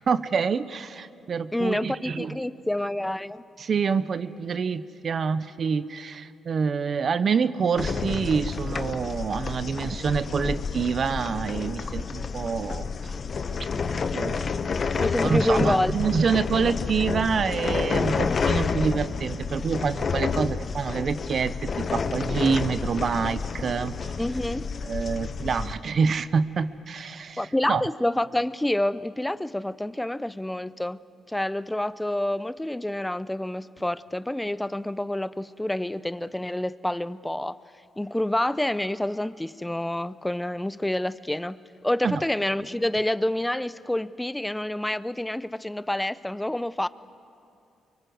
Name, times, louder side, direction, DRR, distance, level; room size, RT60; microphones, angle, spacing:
voice 1, 0.1-2.4 3.6-13.1 14.1-14.5 15.0-24.2 24.8-27.4 27.7-27.8 42.0-42.2, right 5 dB, 50° right, 14 dB, 0.7 m, -27 dB
voice 2, 1.5-3.4 15.0-15.9 24.2-24.7 27.4-31.0 31.3-37.6 38.0-46.9, left 1 dB, 10° left, 16 dB, 0.6 m, -28 dB
sound 1, 7.8-25.7, left 5 dB, 45° left, 1.0 m, -29 dB
25.0 x 24.0 x 7.9 m, 2.6 s
cardioid pair, 80°, 0 cm